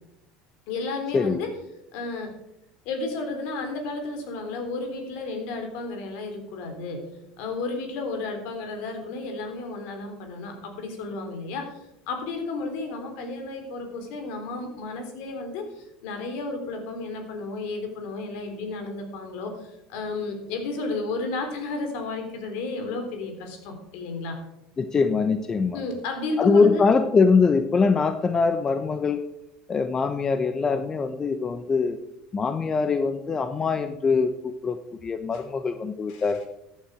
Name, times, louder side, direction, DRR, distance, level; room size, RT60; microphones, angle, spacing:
voice 1, 0.7-1.5 1.9-2.3 2.9-7.0 7.4-24.4 25.7-26.9 35.3-35.4 36.1-36.3, left 3 dB, 70° left, 5 dB, 3.6 m, -32 dB
voice 2, 24.8-25.8 26.4-29.2 29.7-32.0 32.3-34.3 34.6-36.4, left 4 dB, 30° left, 8 dB, 0.9 m, -23 dB
14.5 x 8.9 x 5.0 m, 0.84 s
supercardioid pair, 95°, 2 cm